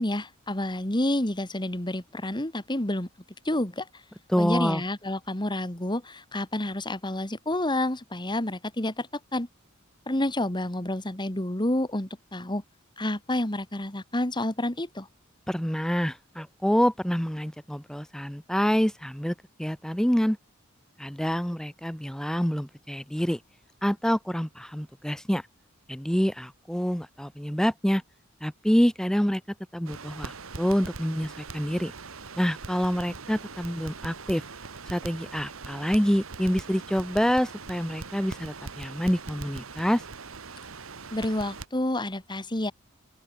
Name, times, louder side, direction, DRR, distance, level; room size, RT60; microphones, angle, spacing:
voice 1, 0.0-3.1 3.5-3.9 4.4-9.1 9.3-9.5 10.1-12.6 13.0-15.1 41.1-42.7, left 1 dB, 20° left, 2.2 m, -29 dB
voice 2, 4.3-4.8 15.5-20.4 21.0-23.4 23.8-25.4 25.9-28.0 28.4-29.4 29.7-31.9 32.4-34.4 34.9-40.0, equal, 5° left, 0.8 m, -27 dB
Crackle, 29.9-41.7, right 4 dB, 75° right, 1.7 m, -41 dB
open air
head